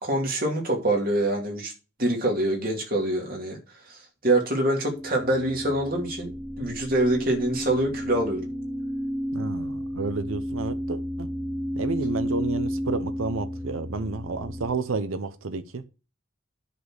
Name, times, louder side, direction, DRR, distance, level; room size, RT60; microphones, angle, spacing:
voice 1, 0.0-1.7 2.0-3.6 3.9-8.4, right 1 dB, 45° right, 2.7 m, -25 dB
sound 1, 4.6-14.7, equal, 10° right, 2.2 m, -32 dB
voice 2, 9.3-11.3 11.8-15.8, right 3 dB, 85° right, 0.8 m, -31 dB
10.0 x 4.2 x 6.4 m
head